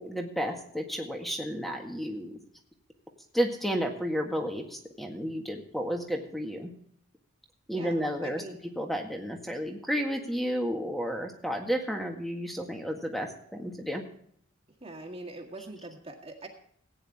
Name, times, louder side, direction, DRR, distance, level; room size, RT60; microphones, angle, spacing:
voice 1, 0.0-2.3 3.3-6.7 7.7-8.4 8.7-14.0, equal, ahead, 3 dB, 1.7 m, -32 dB
voice 2, 7.7-8.5 14.8-16.5, right 2 dB, 25° right, 2 dB, 1.9 m, -43 dB
17.0 x 9.7 x 3.6 m, 0.64 s
head